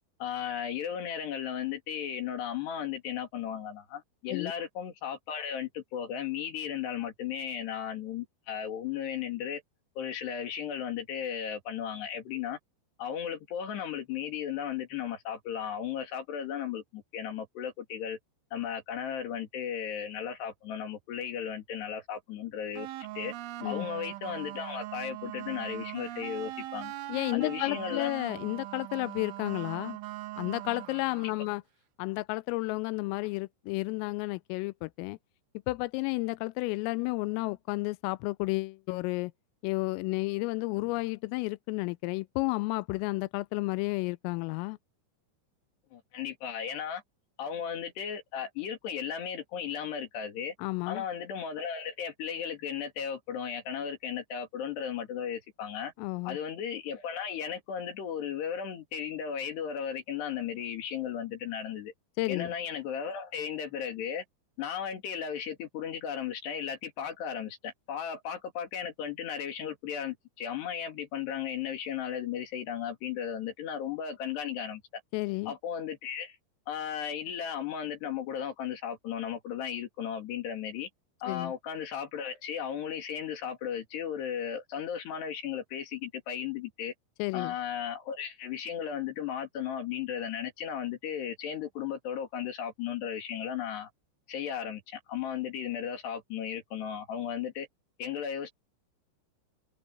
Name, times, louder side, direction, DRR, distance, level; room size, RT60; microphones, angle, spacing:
voice 1, 0.2-9.6 10.0-12.6 13.0-18.2 18.5-22.9 23.2-23.3 23.6-26.9 27.3-28.1 45.9-47.0 47.4-50.5 50.9-55.9 56.2-61.9 62.3-64.2 64.6-75.0 75.5-76.4 76.7-80.9 81.2-86.9 87.3-93.9 94.3-97.7 98.0-98.5, left 8 dB, 60° left, 4.5 m, -35 dB
sound 1, 22.8-31.6, right 16 dB, 75° right, 3.3 m, -41 dB
voice 2, 27.1-30.0 30.4-31.6 32.0-35.2 35.7-39.3 39.6-44.8 50.6-51.1 56.0-56.4 62.2-62.5 75.1-75.5 81.3-81.5 87.2-87.5, left 23 dB, 85° left, 3.3 m, -32 dB
omnidirectional pair, 5.9 m